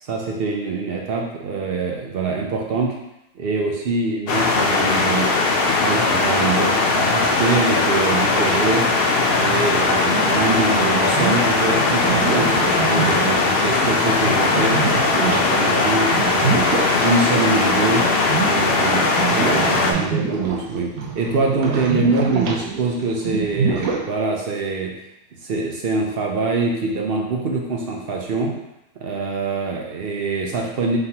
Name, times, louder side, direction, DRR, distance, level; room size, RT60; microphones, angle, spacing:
voice 1, 0.0-2.9 3.3-8.9 9.2-14.8 15.2-16.6 17.0-18.1 18.4-19.1 19.3-24.9 25.4-28.5 29.0-31.0, right 3 dB, 55° right, 0 dB, 0.7 m, -24 dB
Meltwater Close, 4.3-19.9, left 3 dB, 60° left, 0.6 m, -19 dB
sound 1, 7.6-24.0, right 5 dB, 85° right, 1.2 m, -27 dB
4.4 x 3.9 x 2.8 m, 0.86 s
omnidirectional pair, 1.5 m